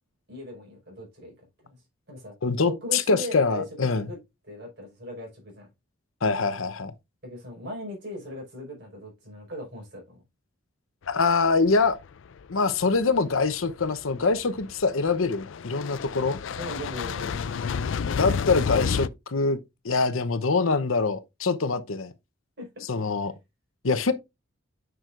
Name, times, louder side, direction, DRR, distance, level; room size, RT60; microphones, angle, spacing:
voice 1, 0.3-1.8 2.1-2.3 2.6-4.2 4.4-5.7 7.2-10.2 16.6-17.4 22.6-22.9, equal, 55° right, 4.8 m, -39 dB
voice 2, 2.4-4.0 6.2-6.9 11.1-12.0 12.5-16.4 18.2-19.6 19.8-22.1 22.9-23.3 23.8-24.1, left 4 dB, 80° left, 0.8 m, -24 dB
sound 1, 11.2-11.3 11.7-12.1 12.4-19.1, left 6 dB, 65° left, 0.4 m, -31 dB
9.1 x 6.2 x 2.5 m
head